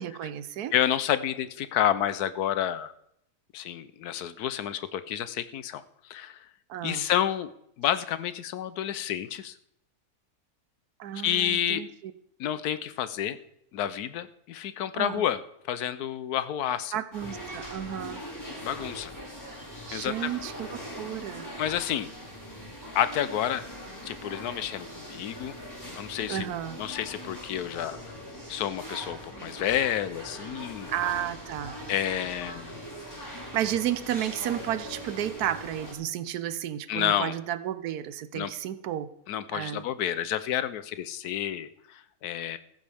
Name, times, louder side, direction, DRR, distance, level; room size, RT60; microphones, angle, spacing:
voice 1, 0.0-0.7 6.7-7.1 11.0-12.1 14.9-15.2 16.9-18.2 19.9-21.5 26.3-26.8 30.9-31.8 33.5-39.1 39.5-39.9, right 11 dB, 85° right, 14 dB, 1.2 m, -32 dB
voice 2, 0.7-2.9 3.5-5.8 6.1-6.4 6.8-7.5 7.8-9.5 11.2-11.8 12.4-13.4 13.7-15.4 15.7-17.0 18.6-19.1 19.9-20.3 21.6-22.1 22.9-23.6 24.0-25.5 26.0-26.5 26.8-28.0 28.5-30.9 31.9-32.8 36.9-37.3 38.3-38.5 39.3-42.6, left 10 dB, 85° left, 13 dB, 1.2 m, -29 dB
sound 1, 17.1-35.9, equal, 15° left, 4.6 m, -41 dB
14.5 x 14.5 x 3.5 m, 0.77 s
omnidirectional pair, 1.6 m